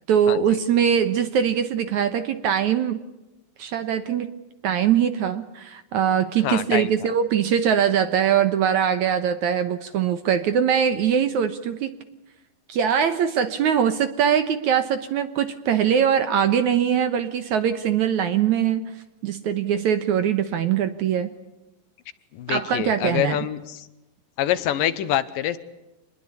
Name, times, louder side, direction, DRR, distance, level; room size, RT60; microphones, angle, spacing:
voice 1, 0.1-3.0 3.6-4.3 4.6-11.9 12.7-18.9 19.2-21.3 22.5-23.5, right 8 dB, 65° right, 11 dB, 2.1 m, -22 dB
voice 2, 6.4-6.9 22.3-23.9 24.4-25.6, left 11 dB, 75° left, 13 dB, 2.6 m, -25 dB
26.5 x 21.0 x 8.4 m, 0.98 s
omnidirectional pair, 4.3 m